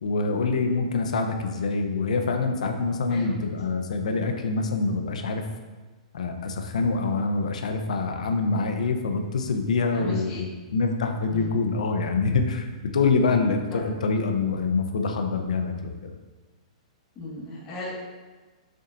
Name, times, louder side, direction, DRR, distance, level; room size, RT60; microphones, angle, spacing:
voice 1, 0.0-5.4 6.1-15.7 16.0-16.1, left 4 dB, 80° left, 5 dB, 0.8 m, -25 dB
voice 2, 9.9-10.4 11.3-11.5 13.7-13.8 17.2-17.9, left 2 dB, 25° left, -8 dB, 1.8 m, -36 dB
6.9 x 6.4 x 2.7 m, 1.3 s
hypercardioid pair, 145°, 4 cm